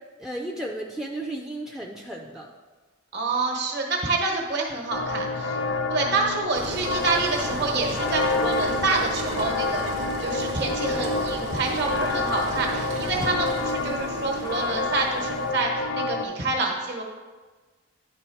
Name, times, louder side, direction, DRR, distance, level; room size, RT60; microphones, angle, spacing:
voice 1, 0.2-2.5, right 1 dB, ahead, 1 dB, 0.4 m, -34 dB
voice 2, 3.1-5.6 5.9-9.8 10.2-17.0, right 3 dB, 55° right, 1 dB, 1.1 m, -27 dB
sound 1, 4.9-16.3, left 3 dB, 65° left, 0.5 m, -28 dB
Engine, 6.5-15.5, right 2 dB, 75° right, 0.9 m, -35 dB
10.0 x 3.4 x 4.5 m, 1.3 s
head